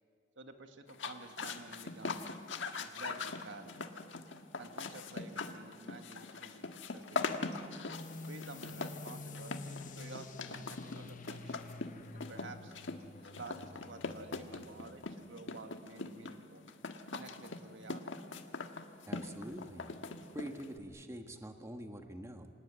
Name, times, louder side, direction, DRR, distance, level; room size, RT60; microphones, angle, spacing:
voice 1, 0.4-2.3 2.7-4.0 4.6-7.5 8.3-11.7 12.1-12.7 13.2-16.7 17.1-18.1, right 2 dB, 80° right, 6 dB, 1.8 m, -51 dB
sound 1, 0.9-20.8, left 4 dB, 85° left, 1.5 m, -42 dB
sound 2, 7.9-15.2, left 3 dB, 45° left, 1.0 m, -49 dB
voice 2, 19.1-19.9 20.3-22.5, equal, 15° right, 6 dB, 1.3 m, -45 dB
27.0 x 19.0 x 8.8 m, 2.2 s
head